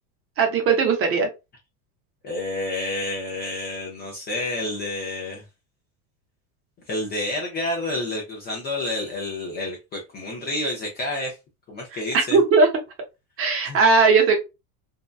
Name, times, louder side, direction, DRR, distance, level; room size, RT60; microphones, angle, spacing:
voice 1, 0.4-1.3 12.1-12.7 13.4-14.3, right 4 dB, 30° right, 4 dB, 0.6 m, -18 dB
voice 2, 2.2-5.4 6.9-11.4 11.7-12.4 13.6-13.8, left 2 dB, 25° left, -1 dB, 0.4 m, -29 dB
2.6 x 2.2 x 2.2 m, 0.25 s
supercardioid pair, 135°, 46 cm